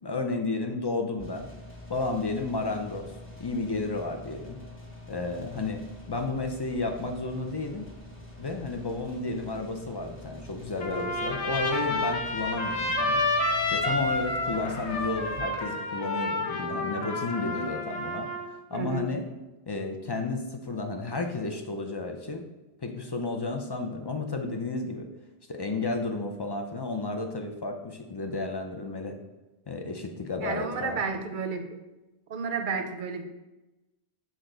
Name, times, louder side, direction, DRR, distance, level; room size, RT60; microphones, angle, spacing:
voice 1, 0.0-1.5 1.9-3.1 3.4-4.6 5.1-5.8 6.1-7.9 8.4-13.2 13.7-19.3 19.7-22.4 22.8-25.1 25.5-29.1 29.7-31.0, left 3 dB, 40° left, 4 dB, 0.3 m, -32 dB
sound 1, 1.2-15.4, left 1 dB, 10° left, 0.9 m, -46 dB
Trumpet, 10.8-18.5, left 2 dB, 85° left, 1.2 m, -29 dB
voice 2, 18.7-19.1 30.4-31.8 32.3-33.2, right 4 dB, 55° right, 7 dB, 0.7 m, -31 dB
6.6 x 4.5 x 3.8 m, 1.1 s
omnidirectional pair, 1.1 m